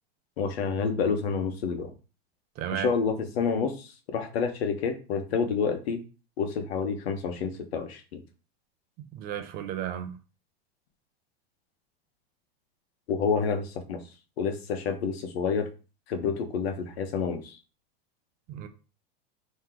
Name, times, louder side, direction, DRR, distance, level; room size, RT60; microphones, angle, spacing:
voice 1, 0.4-1.9 2.7-6.0 6.4-8.2 13.1-14.0 14.4-15.7 16.1-17.6, left 5 dB, 85° left, 1.1 m, -29 dB
voice 2, 2.6-2.9 9.1-10.1 18.5-18.7, right 10 dB, 30° right, 0.6 m, -33 dB
3.8 x 3.2 x 4.4 m
supercardioid pair, 160°, 30 cm